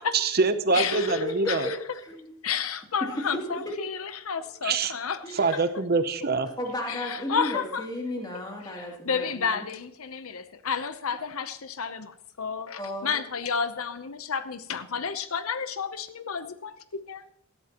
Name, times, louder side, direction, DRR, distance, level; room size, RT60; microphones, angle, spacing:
voice 1, 0.1-1.7 4.6-4.9 5.3-6.5, right 4 dB, 45° right, 0.7 m, -24 dB
voice 2, 0.7-1.2 1.5-1.8 2.4-5.4 6.9-7.9 8.6-17.2, left 6 dB, 80° left, 0.8 m, -31 dB
voice 3, 1.2-1.7 2.0-2.3 5.2-5.6 6.6-9.6 12.8-13.2, left 1 dB, 20° left, 2.8 m, -34 dB
18.0 x 13.0 x 3.0 m
head